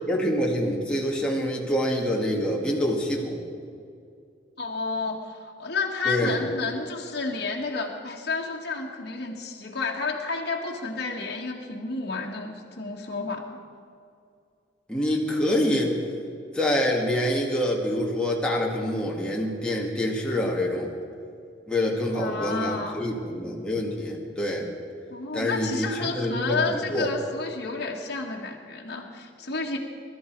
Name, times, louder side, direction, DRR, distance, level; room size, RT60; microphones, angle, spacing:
voice 1, 0.1-3.4 6.1-6.4 14.9-16.0 16.5-20.9 21.7-24.7 25.3-27.1, equal, 5° left, -3 dB, 2.0 m, -26 dB
voice 2, 4.6-13.6 22.1-23.0 25.1-29.8, left 4 dB, 65° left, -1 dB, 1.7 m, -31 dB
22.0 x 13.0 x 4.7 m, 2.4 s
head